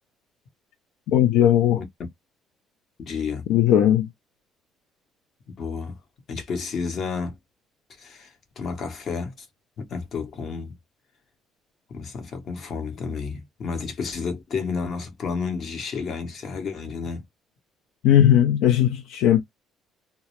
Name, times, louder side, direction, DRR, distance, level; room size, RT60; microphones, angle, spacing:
voice 1, 1.1-1.8 3.5-4.1 18.0-19.4, left 11 dB, 85° left, 0.3 m, -18 dB
voice 2, 3.0-3.5 5.6-6.0 6.3-7.4 8.0-9.5 9.8-10.7 11.9-17.2, left 5 dB, 50° left, 0.9 m, -31 dB
2.2 x 2.0 x 2.9 m
cardioid pair, 110°, 0 cm